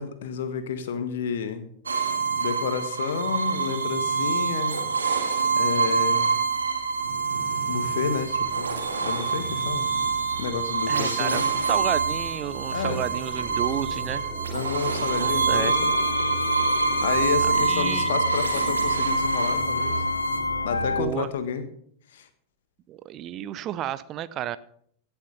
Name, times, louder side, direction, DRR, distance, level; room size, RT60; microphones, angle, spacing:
voice 1, 0.0-1.7 2.4-4.8 5.6-6.4 7.7-9.8 10.4-11.5 12.7-13.1 14.5-15.9 17.0-20.0 20.6-21.6 22.1-22.3, left 6 dB, 60° left, 10 dB, 1.4 m, -30 dB
sound 1, 1.9-20.4, right 5 dB, 75° right, 1.9 m, -26 dB
sound 2, 4.9-21.0, right 3 dB, 20° right, 3.0 m, -39 dB
voice 2, 10.9-14.2 15.2-15.7 17.6-18.1 20.9-21.3 22.9-24.6, right 12 dB, 35° right, 16 dB, 0.6 m, -32 dB
sound 3, 15.5-21.0, left 3 dB, 80° left, 0.5 m, -28 dB
16.5 x 7.2 x 5.4 m, 0.63 s
figure-of-eight pair, 90°, 0 cm